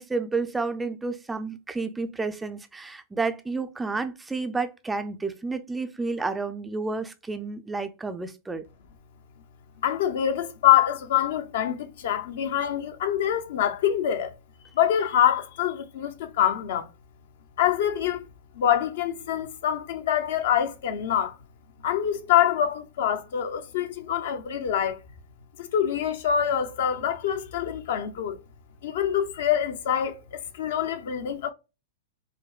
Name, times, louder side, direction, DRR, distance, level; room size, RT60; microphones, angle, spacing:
voice 1, 0.0-8.6, right 3 dB, 10° right, 0.4 m, -30 dB
voice 2, 9.8-14.4 14.7-16.9 17.6-18.3 18.5-21.4 21.8-25.0 25.6-28.4 28.8-31.5, left 10 dB, 65° left, 0.7 m, -25 dB
5.1 x 2.1 x 2.3 m
hypercardioid pair, 135°, 0 cm